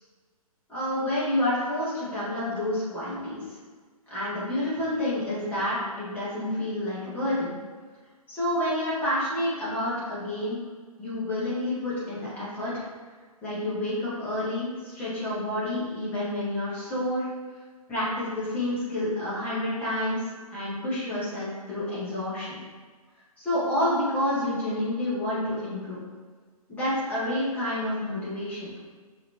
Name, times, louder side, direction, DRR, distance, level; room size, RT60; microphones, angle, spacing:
voice 1, 0.7-3.6 4.1-7.5 8.3-10.6 11.0-12.9 13.4-17.3 17.9-22.6 23.4-26.0 26.7-28.7, left 1 dB, 10° left, -10 dB, 1.4 m, -29 dB
5.7 x 3.0 x 2.8 m, 1.5 s
figure-of-eight pair, 130°, 19 cm